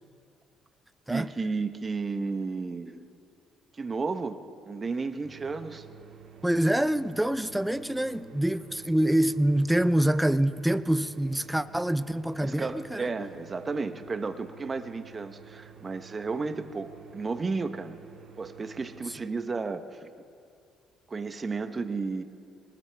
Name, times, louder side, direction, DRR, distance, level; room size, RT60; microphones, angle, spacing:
voice 1, 1.1-3.0 3.7-4.4 4.7-5.9 12.4-18.0 18.4-20.1 21.1-22.2, right 4 dB, 30° right, 1.0 m, -33 dB
sound 1, 5.2-19.2, right 7 dB, 55° right, 2.0 m, -51 dB
voice 2, 6.4-13.1, right 1 dB, 5° right, 0.5 m, -26 dB
21.0 x 19.0 x 3.4 m
supercardioid pair, 80°, 0 cm